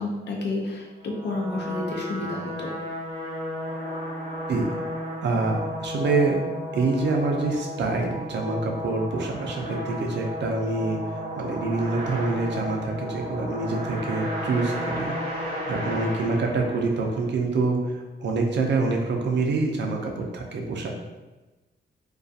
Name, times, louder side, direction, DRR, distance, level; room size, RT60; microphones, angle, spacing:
voice 1, 0.0-2.7, left 2 dB, 70° left, -1 dB, 0.5 m, -30 dB
sound 1, 1.0-17.3, equal, 35° right, 1.1 m, -33 dB
voice 2, 5.2-6.4 6.7-11.0 11.4-15.1 15.4-20.9, right 3 dB, 75° right, 1 dB, 0.5 m, -26 dB
2.4 x 2.3 x 2.6 m, 1.1 s
wide cardioid pair, 125°, 18 cm